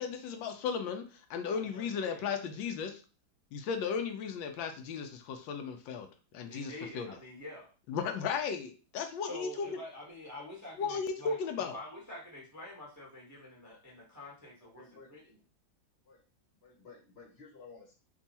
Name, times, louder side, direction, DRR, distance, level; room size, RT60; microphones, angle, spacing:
voice 1, 0.0-3.0 3.5-6.1 6.3-7.1 7.9-9.7 10.8-11.8, left 6 dB, 80° left, 6 dB, 1.3 m, -35 dB
voice 2, 1.4-2.6 6.5-7.7 9.3-15.4, left 1 dB, 15° right, -3 dB, 0.6 m, -47 dB
voice 3, 14.7-15.1 16.0-16.2 16.6-17.9, left 4 dB, 40° left, 0 dB, 1.0 m, -54 dB
3.5 x 2.4 x 4.0 m, 0.34 s
omnidirectional pair, 2.1 m